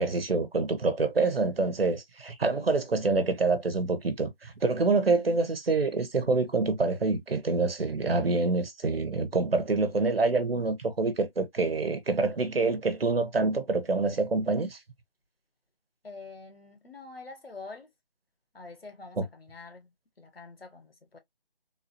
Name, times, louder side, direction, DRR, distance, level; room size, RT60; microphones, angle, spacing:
voice 1, 0.0-14.8 19.2-19.3, right 3 dB, 80° right, 1.2 m, -26 dB
voice 2, 2.4-2.8 5.2-5.3 16.0-17.9 18.5-19.9 20.2-21.2, left 3 dB, 90° left, 1.6 m, -46 dB
3.8 x 2.7 x 2.6 m
figure-of-eight pair, 175°, 29 cm